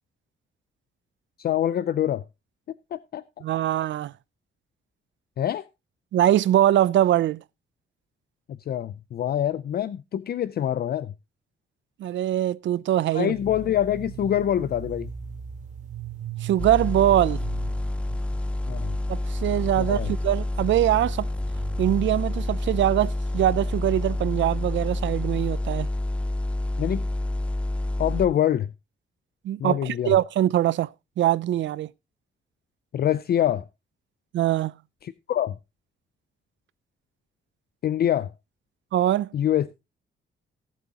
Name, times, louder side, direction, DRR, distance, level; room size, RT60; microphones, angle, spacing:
voice 1, 1.4-2.2 2.9-3.2 5.4-5.7 8.5-11.1 13.1-15.1 18.7-19.0 19.8-20.1 26.8-27.1 28.0-28.7 29.6-30.1 32.9-33.7 35.0-35.6 37.8-38.3 39.3-39.7, left 11 dB, 50° left, 0.5 m, -25 dB
voice 2, 3.4-4.1 6.1-7.4 12.0-13.3 16.4-17.4 19.1-21.3 21.8-25.9 29.4-30.9 31.2-31.9 34.3-34.7 38.9-39.3, right 12 dB, 65° right, 0.5 m, -22 dB
sound 1, 13.3-22.2, right 7 dB, 35° right, 2.2 m, -40 dB
sound 2, 16.6-28.3, left 1 dB, 5° left, 0.6 m, -28 dB
18.0 x 7.6 x 2.9 m
wide cardioid pair, 175°, 20 cm